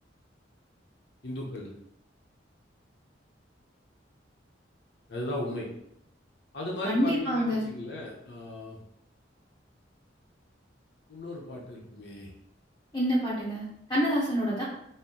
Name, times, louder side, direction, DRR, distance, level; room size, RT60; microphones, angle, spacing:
voice 1, 1.2-1.7 5.1-5.7 6.5-8.8 11.1-12.3, left 1 dB, 65° left, -2 dB, 0.7 m, -36 dB
voice 2, 6.8-7.7 12.9-13.6 13.9-14.6, equal, 20° left, -6 dB, 0.7 m, -26 dB
4.3 x 2.1 x 3.6 m, 0.76 s
head